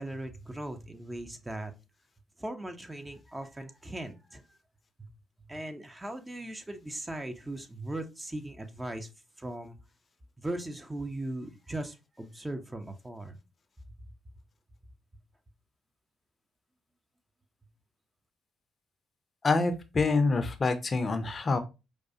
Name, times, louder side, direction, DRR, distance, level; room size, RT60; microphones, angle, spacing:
voice 1, 0.0-1.7 2.4-4.4 5.0-5.1 5.5-9.1 9.4-9.8 10.4-13.4, right 1 dB, 20° right, 6 dB, 0.8 m, -38 dB
voice 2, 19.4-21.6, left 3 dB, 40° left, 9 dB, 0.6 m, -26 dB
4.8 x 2.3 x 2.8 m, 0.27 s
hypercardioid pair, 45°, 0 cm